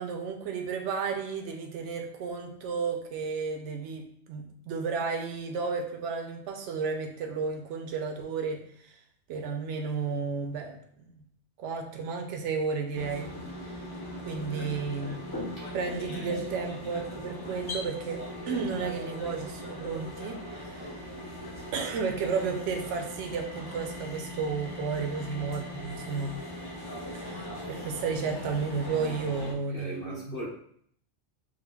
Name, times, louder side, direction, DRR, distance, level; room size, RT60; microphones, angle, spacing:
voice 1, 0.0-8.6 8.9-9.0 9.3-11.1 11.6-13.3 14.2-20.9 21.7-26.3 27.1-30.4, right 5 dB, 75° right, 3 dB, 0.9 m, -33 dB
sound 1, 12.9-29.5, left 1 dB, 30° left, 0.4 m, -39 dB
voice 2, 14.3-14.8 15.5-15.7 29.7-30.5, equal, 50° left, -8 dB, 1.6 m, -41 dB
6.1 x 2.1 x 2.2 m, 0.64 s
omnidirectional pair, 1.2 m